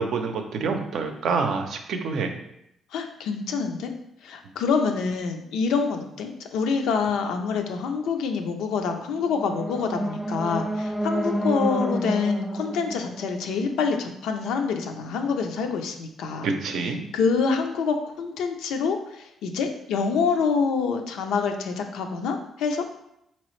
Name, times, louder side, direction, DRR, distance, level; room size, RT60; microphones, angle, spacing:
voice 1, 0.0-2.3 16.4-17.0, right 4 dB, 70° right, 5 dB, 0.5 m, -27 dB
voice 2, 2.9-3.9 4.2-16.5 17.1-22.8, left 5 dB, 85° left, 5 dB, 0.5 m, -26 dB
sound 1, 9.1-14.2, right 1 dB, 5° right, 0.3 m, -30 dB
4.0 x 2.9 x 3.1 m, 0.79 s
cardioid pair, 90°, 0 cm